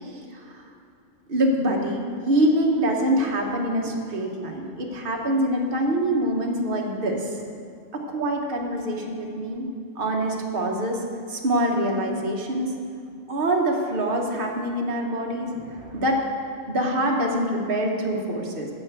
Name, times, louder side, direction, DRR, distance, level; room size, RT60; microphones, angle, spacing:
voice 1, 0.3-0.6 1.3-7.4 7.9-9.7 10.0-11.0 11.3-12.7 13.3-16.2 16.7-18.7, right 1 dB, 45° right, 0 dB, 1.3 m, -25 dB
11.5 x 4.5 x 8.1 m, 2.5 s
omnidirectional pair, 1.3 m